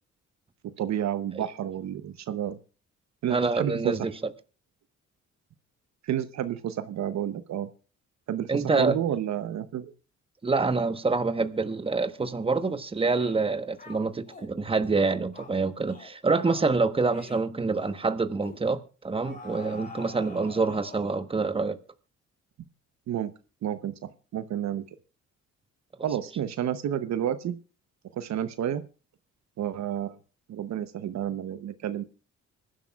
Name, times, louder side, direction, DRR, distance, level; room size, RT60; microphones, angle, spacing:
voice 1, 0.6-2.6 3.2-4.0 6.0-7.7 8.3-9.9 23.1-23.3 23.6-24.8 26.0-27.6 28.1-28.9 29.6-30.2 30.5-32.0, right 10 dB, 65° right, 0.8 m, -30 dB
voice 2, 3.3-4.1 8.5-9.0 10.4-21.8, right 4 dB, 20° right, 1.1 m, -26 dB
sound 1, 12.6-12.8 13.2-13.4 13.8-14.5 14.8-15.0 15.3-15.5 15.9-16.1 16.4-16.7 17.1-17.4 17.7-18.0 18.4-18.6 19.2-21.3, left 3 dB, 30° left, 3.8 m, -45 dB
25.0 x 11.5 x 2.3 m
cardioid pair, 90°, 30 cm